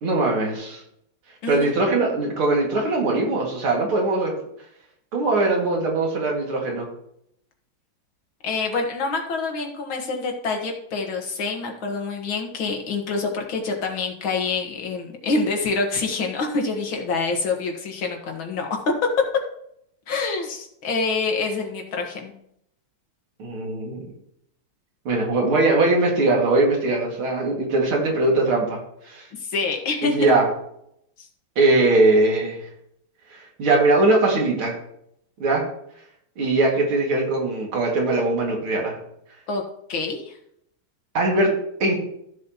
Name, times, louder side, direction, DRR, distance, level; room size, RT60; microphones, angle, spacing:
voice 1, 0.0-0.8 1.5-4.3 5.1-6.9 23.4-24.1 25.0-28.8 29.0-29.2 30.0-30.5 31.6-32.6 33.3-34.7 35.4-35.6 36.4-39.0 41.1-41.5 41.8-42.0, right 2 dB, 90° right, -1 dB, 3.0 m, -21 dB
voice 2, 8.4-18.7 20.1-22.3 29.5-30.2 39.5-39.6 39.9-40.3, left 4 dB, 70° left, 2 dB, 2.3 m, -26 dB
14.5 x 7.3 x 3.0 m, 0.74 s
omnidirectional pair, 2.3 m